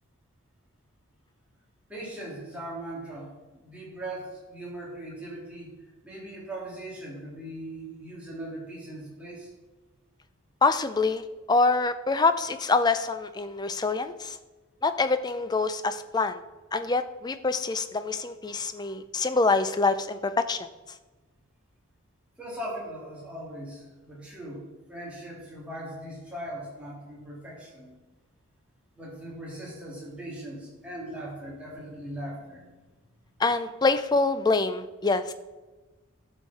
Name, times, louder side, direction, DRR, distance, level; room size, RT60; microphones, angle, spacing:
voice 1, 1.9-5.7 6.0-9.5 22.4-24.6 24.9-28.0 29.0-32.8, right 1 dB, 5° right, -6 dB, 2.6 m, -39 dB
voice 2, 10.6-14.4 14.8-16.4 16.7-20.2 20.5-20.6 33.4-35.3, left 3 dB, 20° left, 11 dB, 0.4 m, -25 dB
12.0 x 6.5 x 4.1 m, 1.2 s
head